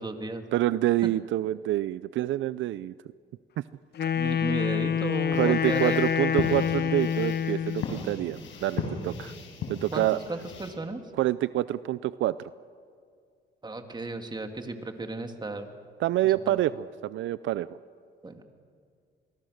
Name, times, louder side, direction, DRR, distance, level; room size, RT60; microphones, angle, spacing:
voice 1, 0.0-0.4 1.0-1.1 4.1-6.1 9.9-11.0 13.6-15.7 16.2-16.6 18.2-18.4, right 2 dB, 20° right, 5 dB, 2.4 m, -34 dB
voice 2, 0.5-2.9 5.3-9.3 9.7-10.2 11.2-12.3 16.0-17.7, right 14 dB, 80° right, 16 dB, 0.5 m, -27 dB
Wind instrument woodwind instrument, 4.0-8.0, left 8 dB, 55° left, 0.7 m, -27 dB
sound 1, 5.3-10.7, left 5 dB, 80° left, 5.7 m, -37 dB
26.5 x 21.0 x 6.6 m, 2.2 s
cardioid pair, 90°, 20 cm